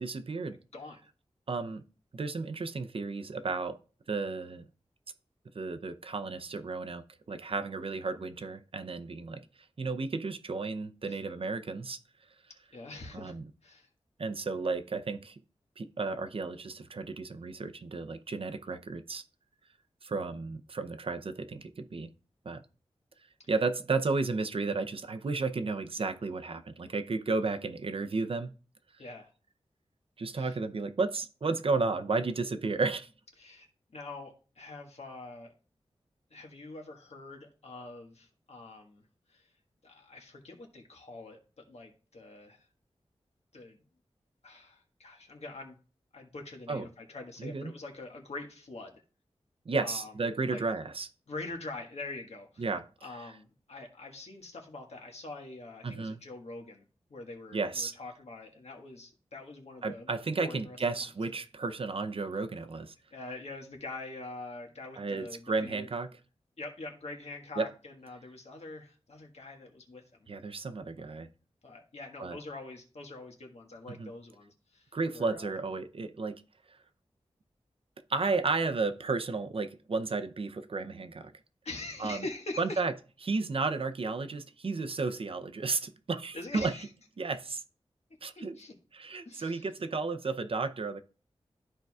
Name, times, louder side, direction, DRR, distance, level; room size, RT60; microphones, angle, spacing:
voice 1, 0.0-0.5 1.5-1.8 2.1-3.8 4.1-4.6 5.6-9.4 9.8-12.0 13.1-13.5 14.2-15.4 15.8-19.2 20.0-22.1 22.5-22.6 23.5-28.5 30.2-33.1 46.7-46.9 47.4-47.7 49.7-51.1 52.6-52.8 55.8-56.2 57.5-57.9 59.8-62.9 65.0-66.1 67.6-67.7 70.3-71.3 72.2-72.4 73.9-74.1 74.9-76.4 78.1-81.3 82.0-82.2 82.6-82.9 83.2-86.7 87.2-87.6 88.2-88.6 88.9-91.0, right 3 dB, 55° right, 0.6 m, -33 dB
voice 2, 12.7-13.3 13.6-13.9 29.0-29.3 30.3-30.6 33.4-33.7 33.9-35.5 36.3-39.0 39.3-39.5 39.8-42.7 43.5-43.8 44.4-45.8 46.1-49.0 49.8-50.1 50.5-50.6 51.3-52.7 53.0-56.8 57.1-60.8 63.1-65.9 66.6-70.3 71.0-71.1 71.6-75.5 81.6-82.8 86.3-86.9 88.3-88.8 89.2-89.7, left 2 dB, 75° left, 1.5 m, -44 dB
13.0 x 4.5 x 2.3 m
wide cardioid pair, 85°, 11 cm